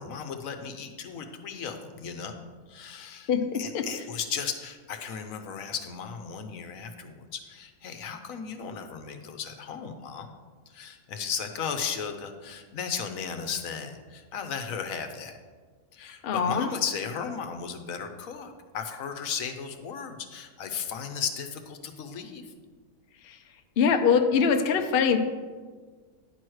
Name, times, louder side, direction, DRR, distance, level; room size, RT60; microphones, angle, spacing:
voice 1, 0.0-3.3 3.6-10.3 10.7-15.4 15.9-22.5, left 6 dB, 80° left, 7 dB, 1.2 m, -35 dB
voice 2, 3.1-3.9 16.0-16.7 23.2-23.4 23.8-25.2, left 6 dB, 55° left, 7 dB, 0.7 m, -24 dB
9.9 x 4.6 x 6.3 m, 1.5 s
omnidirectional pair, 1.4 m